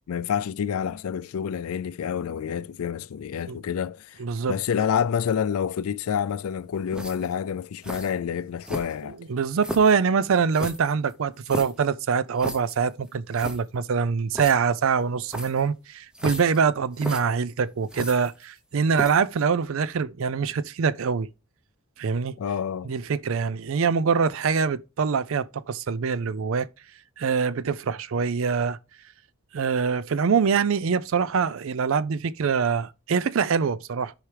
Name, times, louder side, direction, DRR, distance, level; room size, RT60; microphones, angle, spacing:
voice 1, 0.1-4.2 4.5-9.2 22.4-22.9, left 7 dB, 75° left, 0.4 m, -28 dB
voice 2, 4.2-4.6 9.1-21.3 22.0-22.4 22.8-26.7 27.2-28.8 29.5-34.1, right 6 dB, 65° right, 0.4 m, -24 dB
sound 1, 6.9-7.4 7.8-8.1 8.6-9.1 9.6-10.0 10.5-11.8 12.4-12.8 13.1-13.2 13.3-13.6 14.3-14.5 15.3-15.6 16.1-16.6 16.9-17.2 17.9-18.6 18.9-19.3, equal, 5° right, 0.7 m, -34 dB
13.0 x 4.8 x 3.3 m
head